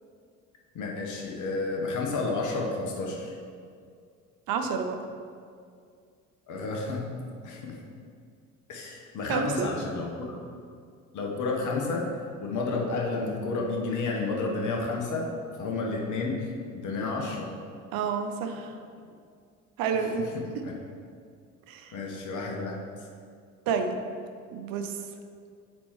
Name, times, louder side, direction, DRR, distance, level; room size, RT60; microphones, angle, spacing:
voice 1, 0.7-3.3 6.5-7.1 7.4-7.8 8.7-10.3 11.1-12.0 12.4-15.3 15.6-16.4 16.7-17.5 20.6-20.7 21.9-22.8, left 3 dB, 45° left, -1 dB, 1.1 m, -31 dB
voice 2, 4.5-5.0 9.2-9.7 17.9-18.8 19.8-20.2 20.5-20.6 21.7-22.0 23.7-24.0 24.5-25.0, right 6 dB, 55° right, 6 dB, 0.7 m, -29 dB
7.5 x 4.2 x 3.1 m, 2.2 s
figure-of-eight pair, 55°, 43 cm